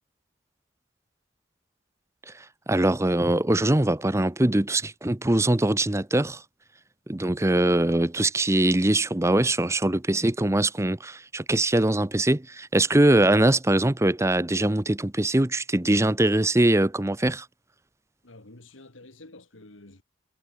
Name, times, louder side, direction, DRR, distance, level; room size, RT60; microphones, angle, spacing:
voice 1, 2.3-6.4 7.1-17.5, right 1 dB, 15° right, 0.8 m, -22 dB
voice 2, 18.2-20.0, left 2 dB, 75° left, 2.6 m, -49 dB
head